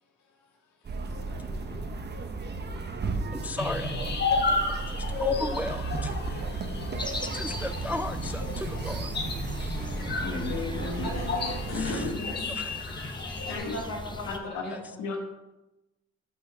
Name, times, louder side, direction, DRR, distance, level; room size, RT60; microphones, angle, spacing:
sound 1, 0.8-12.1, right 3 dB, 35° right, 0.9 m, -34 dB
voice 1, 1.1-10.3 11.7-12.1 12.5-13.5 14.7-14.8, left 1 dB, 5° right, 10 dB, 0.3 m, -38 dB
sound 2, 3.6-13.6, left 3 dB, 35° left, 1.2 m, -33 dB
sound 3, 7.0-14.4, left 2 dB, 15° left, 0.8 m, -39 dB
voice 2, 10.0-11.1 11.7-12.4 13.5-13.8 14.2-15.2, left 4 dB, 85° left, 1 dB, 1.2 m, -35 dB
voice 3, 11.0-12.5 13.5-15.0, left 1 dB, 60° left, -3 dB, 2.8 m, -37 dB
5.6 x 5.6 x 6.2 m, 0.99 s
cardioid pair, 90°, 30 cm